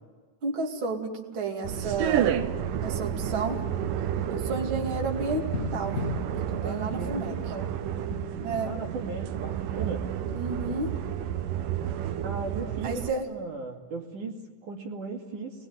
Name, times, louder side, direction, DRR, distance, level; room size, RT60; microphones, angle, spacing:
voice 1, 0.4-2.3 2.8-3.6 4.3-5.4 5.7-6.0 6.5-7.3 8.4-8.7 10.3-10.9 12.8-13.3, right 3 dB, 35° right, 0 dB, 2.6 m, -31 dB
sound 1, 1.6-13.1, right 9 dB, 70° right, 2.2 m, -31 dB
sound 2, 5.4-10.0 10.3-10.4 10.7-11.4 12.8-12.9, left 4 dB, 45° left, 1.0 m, -39 dB
voice 2, 6.6-7.8 8.6-10.1 12.2-15.7, right 4 dB, 55° right, 0 dB, 3.6 m, -37 dB
28.5 x 21.0 x 9.5 m, 1.4 s
omnidirectional pair, 4.6 m